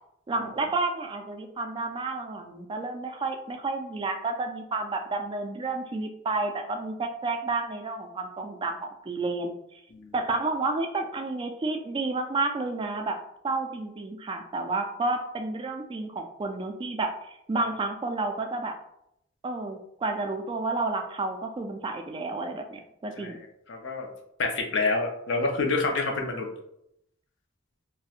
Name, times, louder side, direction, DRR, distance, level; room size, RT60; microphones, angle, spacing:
voice 1, 0.3-9.6 10.1-13.2 13.4-18.7 19.4-23.4, right 3 dB, 25° right, 5 dB, 0.3 m, -31 dB
voice 2, 23.2-24.1 24.4-26.5, left 3 dB, 70° left, 2 dB, 0.6 m, -28 dB
4.2 x 2.1 x 2.4 m, 0.78 s
head